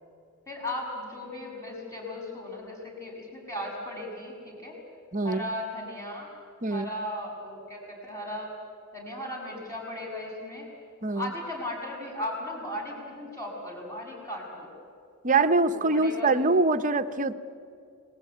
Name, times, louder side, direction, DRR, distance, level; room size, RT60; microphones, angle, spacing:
voice 1, 0.5-4.8 5.2-6.3 6.7-8.5 8.9-10.7 11.1-14.7 15.6-16.3, left 1 dB, 15° left, -1 dB, 6.8 m, -36 dB
voice 2, 5.1-5.4 6.6-6.9 11.0-11.3 15.2-17.3, right 3 dB, 35° right, 10 dB, 0.9 m, -24 dB
30.0 x 19.5 x 9.2 m, 2.3 s
head